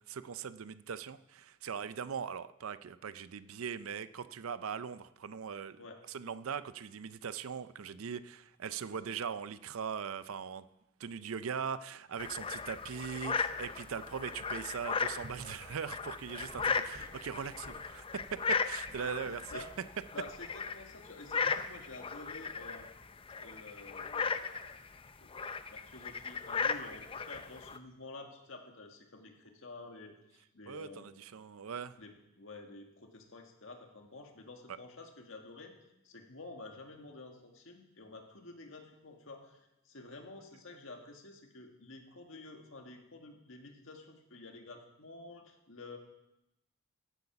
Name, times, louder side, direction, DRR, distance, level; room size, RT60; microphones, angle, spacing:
voice 1, 0.0-5.8 6.1-10.7 11.0-18.0 18.3-19.6 30.7-32.0, right 7 dB, 75° right, 14 dB, 0.5 m, -40 dB
sound 1, 12.2-27.8, left 5 dB, 25° left, 0.5 m, -37 dB
Gurgling / Sink (filling or washing) / Liquid, 15.2-15.5 16.4-19.1 19.5-19.7 20.2-20.5 21.4-21.7, equal, 45° right, 2.6 m, -54 dB
voice 2, 19.2-19.7 20.1-22.9 23.4-24.6 25.2-25.3 25.7-31.1 32.0-35.7 36.0-46.0, left 2 dB, 65° left, 3 dB, 1.8 m, -50 dB
15.5 x 8.1 x 5.9 m, 0.91 s
head